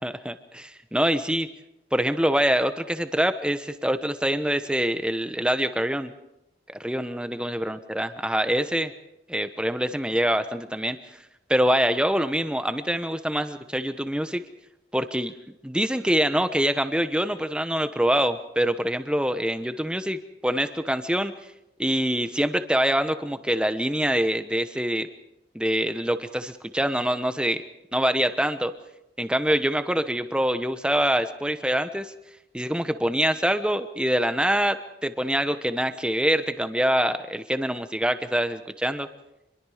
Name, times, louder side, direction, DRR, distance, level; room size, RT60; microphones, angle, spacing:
voice 1, 0.0-1.5 1.9-6.1 6.7-8.9 9.3-11.0 11.5-14.4 14.9-15.3 15.6-21.3 21.8-25.1 25.5-27.6 27.9-28.7 29.2-32.1 32.5-39.1, equal, 5° right, 10 dB, 1.0 m, -25 dB
27.0 x 22.0 x 5.0 m, 0.89 s
head